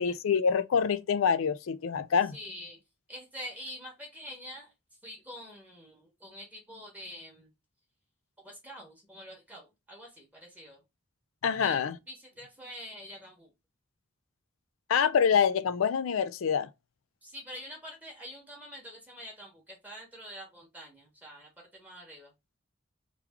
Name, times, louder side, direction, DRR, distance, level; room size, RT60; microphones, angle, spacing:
voice 1, 0.0-2.4 11.4-12.0 14.9-16.7, left 7 dB, 85° left, 0.4 m, -26 dB
voice 2, 2.3-2.8 3.1-4.7 5.0-7.5 8.4-10.8 11.6-13.5 17.2-22.3, equal, 10° right, 0.9 m, -46 dB
3.2 x 2.3 x 3.4 m
head